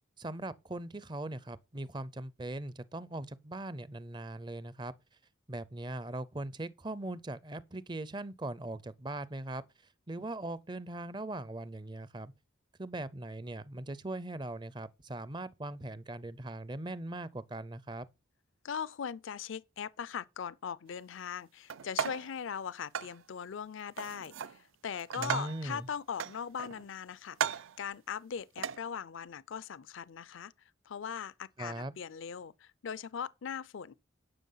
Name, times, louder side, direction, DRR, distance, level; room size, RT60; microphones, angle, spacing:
voice 1, 0.2-4.9 5.5-9.6 10.1-12.3 12.8-18.1 25.2-25.9 31.6-31.9, right 2 dB, 20° right, 0.5 m, -40 dB
voice 2, 18.6-30.5 30.9-33.9, left 7 dB, 70° left, 0.4 m, -40 dB
sound 1, 21.7-22.3 22.9-23.2 24.0-24.6 24.9-25.7 26.2-26.9 27.3-27.8 28.6-28.8, right 7 dB, 75° right, 0.5 m, -36 dB
11.0 x 6.0 x 5.6 m
head